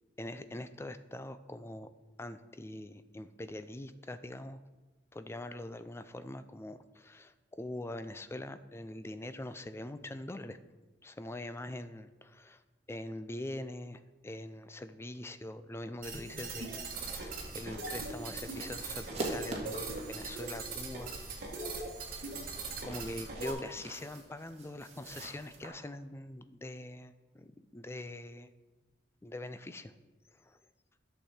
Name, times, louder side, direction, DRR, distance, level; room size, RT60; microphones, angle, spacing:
voice 1, 0.2-1.9 2.2-4.6 5.1-10.6 11.0-12.6 12.9-21.2 21.5-21.8 22.8-28.5 29.2-29.9 30.3-30.6, left 1 dB, 15° left, 12 dB, 0.4 m, -43 dB
sound 1, 16.0-23.5, right 3 dB, 50° right, 1.6 m, -40 dB
sound 2, 16.9-25.7, right 2 dB, 35° right, 1.8 m, -45 dB
10.5 x 6.7 x 4.3 m, 1.2 s
head